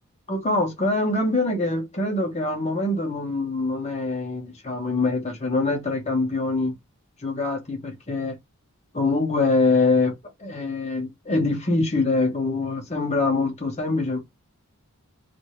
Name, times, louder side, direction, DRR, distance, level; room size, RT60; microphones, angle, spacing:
voice 1, 0.3-6.7 7.2-8.3 8.9-10.1 10.4-14.2, left 3 dB, 30° left, 1.0 m, -24 dB
2.7 x 2.6 x 3.0 m
head